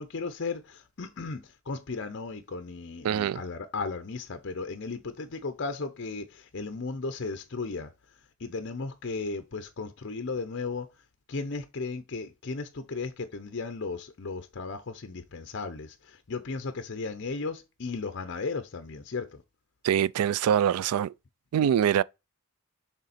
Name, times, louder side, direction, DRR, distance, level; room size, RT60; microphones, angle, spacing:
voice 1, 0.0-7.9 8.4-10.9 11.3-19.4, left 4 dB, 50° left, 0.6 m, -35 dB
voice 2, 3.0-3.4 19.8-21.1 21.5-22.0, right 9 dB, 85° right, 0.3 m, -24 dB
6.7 x 3.7 x 4.2 m
head